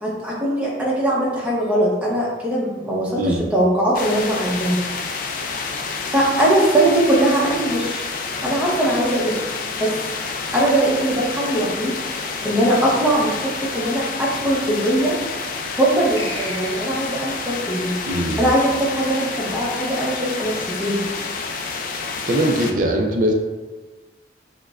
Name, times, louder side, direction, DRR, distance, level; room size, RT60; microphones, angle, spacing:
voice 1, 0.0-4.9 6.1-8.0 8.4-9.4 9.8-10.0 10.5-15.2 15.7-17.9 18.4-21.0, right 1 dB, 10° right, -5 dB, 0.7 m, -21 dB
voice 2, 3.2-3.5 18.0-18.5 22.3-23.3, right 1 dB, 50° right, 2 dB, 0.4 m, -21 dB
sound 1, 3.9-22.7, left 4 dB, 50° left, 0.3 m, -29 dB
sound 2, 16.2-17.3, left 2 dB, 75° left, 0.7 m, -34 dB
6.3 x 2.1 x 2.3 m, 1.3 s
head